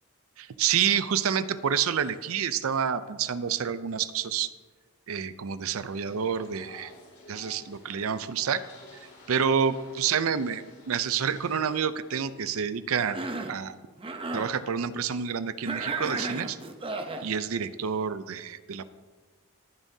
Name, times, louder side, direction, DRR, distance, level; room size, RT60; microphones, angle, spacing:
voice 1, 0.4-4.5 5.1-6.9 7.3-8.6 9.3-13.2 13.5-13.8 14.3-16.6 17.2-18.8, right 7 dB, 70° right, 14 dB, 0.5 m, -28 dB
sound 1, 5.8-11.8, left 2 dB, 50° left, 3.4 m, -52 dB
Cough, 13.0-13.6 14.0-14.5 15.6-17.3, right 3 dB, 25° right, 0.7 m, -34 dB
19.5 x 7.2 x 2.7 m, 1.4 s
head